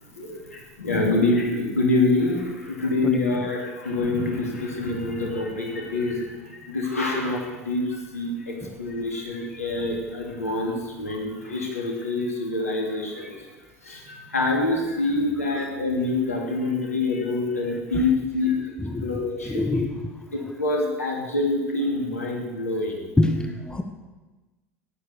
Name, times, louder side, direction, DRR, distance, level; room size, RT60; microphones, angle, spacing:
voice 1, 0.2-13.5 13.8-18.7 19.0-19.6 20.3-23.0, left 2 dB, 80° left, 0 dB, 2.9 m, -26 dB
voice 2, 18.8-20.1 23.2-23.8, left 2 dB, 10° left, 5 dB, 1.4 m, -26 dB
13.5 x 10.5 x 6.9 m, 1.2 s
figure-of-eight pair, 70°, 8 cm